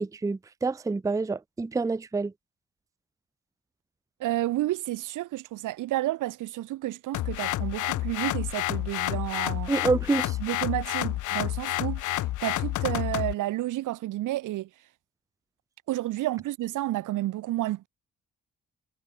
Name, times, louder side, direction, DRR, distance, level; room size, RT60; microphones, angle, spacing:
voice 1, 0.0-2.3 9.7-10.4, right 3 dB, 10° right, 0.5 m, -27 dB
voice 2, 4.2-9.7 10.4-14.7 15.9-17.9, right 15 dB, 85° right, 2.8 m, -31 dB
sound 1, 7.1-13.3, left 15 dB, 80° left, 1.1 m, -29 dB
cardioid pair, 90°, 30 cm